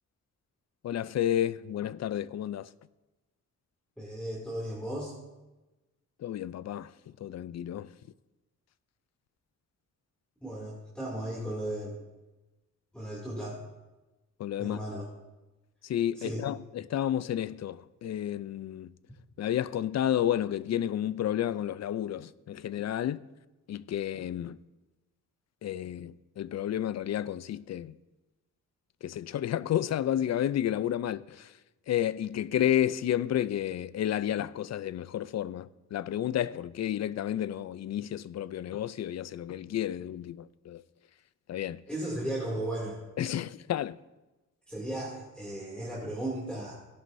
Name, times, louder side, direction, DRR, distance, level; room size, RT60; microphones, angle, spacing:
voice 1, 0.8-2.7 6.2-6.9 7.2-7.9 14.4-14.8 15.9-18.9 19.4-23.2 23.7-24.6 25.6-27.9 29.0-31.5 31.9-40.8 41.5-41.8 43.2-44.0, left 11 dB, 55° left, 0.4 m, -31 dB
voice 2, 4.0-5.1 10.4-12.0 12.9-13.6 14.6-15.1 16.1-16.4 41.9-43.0 44.7-46.7, right 1 dB, 5° left, 2.5 m, -35 dB
17.0 x 11.0 x 2.6 m
cardioid pair, 105°, 32 cm